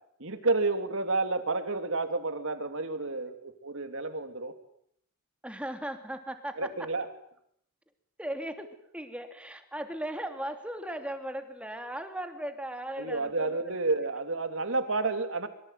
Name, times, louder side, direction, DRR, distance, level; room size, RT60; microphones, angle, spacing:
voice 1, 0.2-4.5 6.6-7.1 13.0-15.5, right 3 dB, 60° right, 9 dB, 3.1 m, -30 dB
voice 2, 5.4-6.9 8.2-8.7 8.9-13.7, right 1 dB, 5° right, 7 dB, 2.9 m, -37 dB
25.5 x 24.0 x 9.3 m, 0.69 s
head